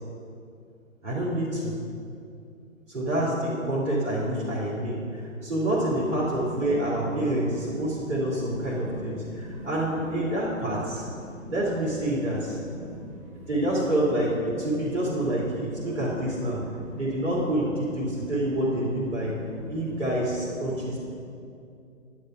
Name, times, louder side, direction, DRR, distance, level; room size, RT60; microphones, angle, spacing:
voice 1, 1.0-1.7 2.9-11.0 11.5-12.6 13.5-16.6 17.0-19.4 19.7-21.0, right 1 dB, 55° right, -7 dB, 3.0 m, -27 dB
voice 2, 9.1-9.7 11.2-11.5 12.6-13.2 15.8-15.9 16.8-17.0 19.3-19.8, right 1 dB, 5° right, -12 dB, 3.3 m, -42 dB
11.0 x 9.0 x 5.6 m, 2.5 s
figure-of-eight pair, 135°, 41 cm